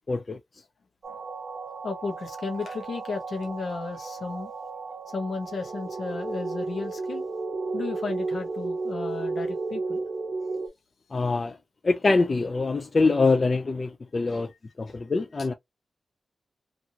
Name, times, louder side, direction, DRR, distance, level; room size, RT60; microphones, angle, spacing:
voice 1, 0.1-0.4 11.1-11.6 11.8-14.5 14.8-15.5, left 3 dB, 35° left, 0.3 m, -24 dB
sound 1, 1.0-10.7, right 3 dB, 55° right, 0.8 m, -33 dB
voice 2, 1.8-4.5 5.1-7.2 7.7-10.1 14.3-14.4 14.9-15.0, left 4 dB, 60° left, 0.8 m, -34 dB
2.8 x 2.5 x 2.6 m
wide cardioid pair, 175°, 0 cm